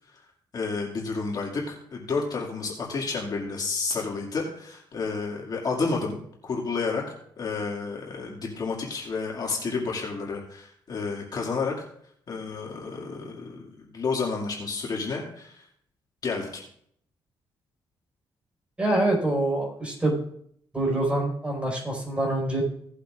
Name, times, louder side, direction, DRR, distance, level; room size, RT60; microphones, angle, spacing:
voice 1, 0.5-11.9 12.3-15.6 16.2-16.6, left 4 dB, 45° left, -2 dB, 2.2 m, -31 dB
voice 2, 18.8-20.2 20.7-22.6, right 1 dB, 15° right, -1 dB, 4.7 m, -25 dB
17.5 x 8.1 x 2.5 m, 0.66 s
cardioid pair, 115°, 9 cm